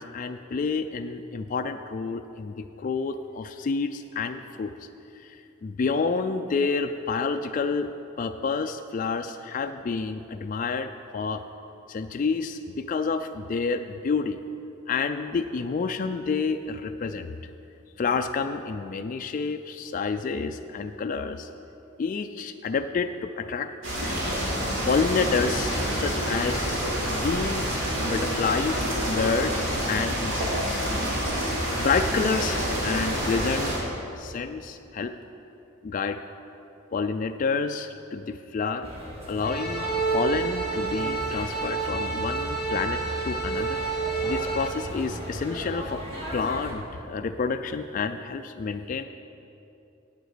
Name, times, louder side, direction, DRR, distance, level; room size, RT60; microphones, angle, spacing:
voice 1, 0.0-4.7 5.2-5.4 5.6-7.9 8.2-11.4 11.9-14.4 14.9-17.3 18.0-21.5 22.0-23.7 24.9-27.8 28.0-33.8 34.2-35.1 35.8-36.2 36.9-38.9 39.3-39.9 40.1-43.8 44.2-46.0 46.3-49.0, left 4 dB, 40° left, 7 dB, 0.3 m, -29 dB
sound 1, 23.8-33.8, equal, 85° right, 2.7 m, -27 dB
sound 2, 38.8-46.7, equal, 30° right, 2.0 m, -37 dB
sound 3, 39.4-44.7, right 4 dB, 5° right, 1.1 m, -29 dB
8.7 x 7.8 x 6.6 m, 2.8 s
head